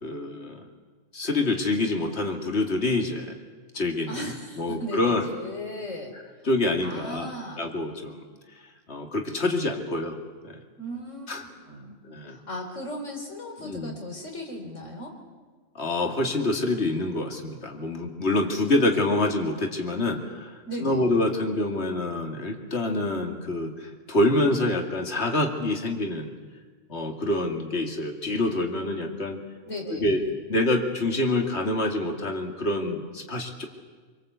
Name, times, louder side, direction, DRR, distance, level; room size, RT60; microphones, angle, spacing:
voice 1, 0.0-0.6 1.1-3.4 3.7-4.3 4.6-5.2 6.4-7.3 7.6-8.2 8.9-10.2 10.4-10.6 11.3-11.4 12.1-12.4 13.6-13.9 15.7-26.3 26.9-29.4 29.9-30.2 30.5-33.7, left 2 dB, 60° left, 2 dB, 2.7 m, -26 dB
voice 2, 4.1-6.1 6.8-7.7 10.8-12.0 12.3-15.1 20.6-21.0 29.7-30.1, equal, 75° left, 2 dB, 4.5 m, -37 dB
26.0 x 24.5 x 8.2 m, 1.5 s
omnidirectional pair, 1.3 m